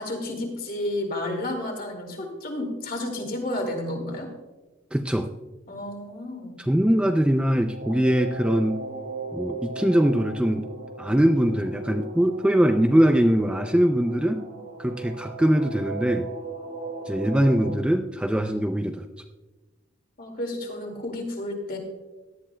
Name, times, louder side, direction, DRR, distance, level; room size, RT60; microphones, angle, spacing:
voice 1, 0.0-4.3 5.7-6.6 20.2-21.8, left 1 dB, 45° left, 2 dB, 2.2 m, -31 dB
voice 2, 4.9-5.3 6.6-8.8 9.3-10.7 11.0-14.4 14.8-16.3 17.1-19.0, equal, 5° right, 5 dB, 0.3 m, -22 dB
sound 1, 7.1-17.8, right 2 dB, 80° right, 2.5 m, -37 dB
17.5 x 11.0 x 2.2 m, 1.2 s
head